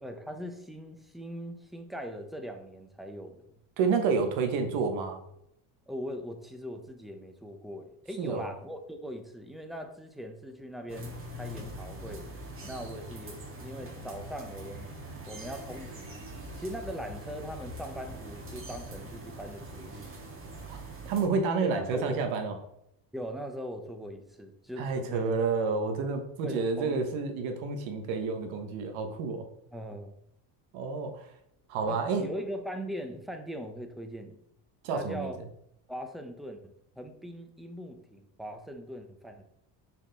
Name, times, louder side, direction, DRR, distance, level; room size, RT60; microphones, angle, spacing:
voice 1, 0.0-3.5 5.9-12.3 12.6-14.9 15.3-16.3 16.6-20.1 21.6-22.2 23.1-25.3 26.4-27.0 29.7-30.1 31.8-34.4 34.9-35.4 35.9-39.4, equal, ahead, 5 dB, 0.7 m, -40 dB
voice 2, 3.8-5.2 8.2-8.5 20.7-20.8 21.0-22.5 24.8-29.4 30.7-31.3 31.7-32.3 34.8-35.3, right 4 dB, 80° right, 5 dB, 1.4 m, -29 dB
sound 1, 10.9-21.3, right 1 dB, 25° right, 1.7 m, -43 dB
5.9 x 4.4 x 4.1 m, 0.76 s
cardioid pair, 125°, 46 cm